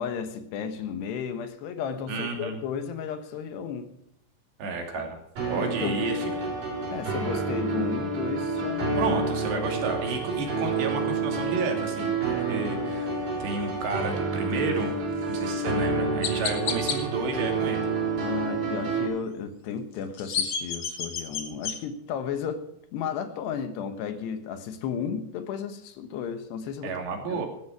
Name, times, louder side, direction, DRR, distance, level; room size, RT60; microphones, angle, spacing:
voice 1, 0.0-3.9 4.9-5.0 5.5-6.0 6.9-9.0 9.5-9.6 18.2-26.9 27.3-27.4, left 7 dB, 75° left, 9 dB, 3.3 m, -33 dB
voice 2, 2.1-2.6 4.6-5.2 5.5-6.5 9.0-13.1 13.4-14.9 15.3-17.9 26.8-27.5, right 4 dB, 75° right, 2 dB, 4.8 m, -31 dB
sound 1, 5.4-19.1, right 3 dB, 50° right, 5.9 m, -29 dB
Chirp tweet, 15.3-15.5 16.2-17.0 19.9-21.8, left 7 dB, 55° left, 1.8 m, -30 dB
15.5 x 13.0 x 4.8 m, 0.77 s
omnidirectional pair, 5.0 m